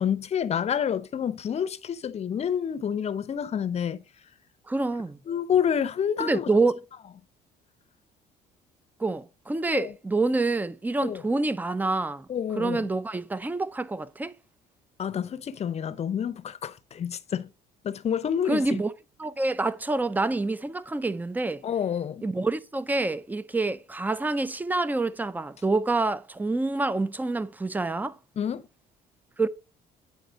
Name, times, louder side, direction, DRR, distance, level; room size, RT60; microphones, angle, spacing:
voice 1, 0.0-4.0 5.3-6.5 9.7-9.9 11.0-11.2 12.3-12.9 15.0-17.5 17.8-18.8 21.6-22.2 28.4-28.6, left 8 dB, 40° left, 0.7 m, -28 dB
voice 2, 4.7-5.2 6.2-6.8 9.0-12.3 12.6-14.3 18.5-18.9 19.2-21.6 22.2-28.1 29.4-29.5, right 3 dB, 10° right, 0.5 m, -27 dB
9.2 x 4.1 x 5.1 m
cardioid pair, 110°, 17 cm